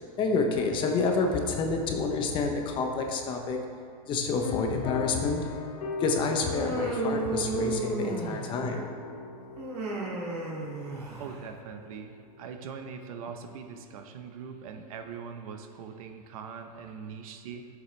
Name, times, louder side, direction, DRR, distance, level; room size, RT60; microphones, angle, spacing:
voice 1, 0.2-3.6 4.1-5.5 6.0-8.9, left 4 dB, 25° left, 3 dB, 0.7 m, -28 dB
sound 1, 4.4-12.5, left 3 dB, 70° left, 1.0 m, -40 dB
Human voice, 6.4-8.7 9.6-11.4, right 2 dB, 85° right, 2.1 m, -33 dB
voice 2, 11.2-17.8, right 6 dB, 65° right, 6 dB, 0.8 m, -42 dB
12.5 x 7.0 x 3.2 m, 2.3 s
supercardioid pair, 155°, 20 cm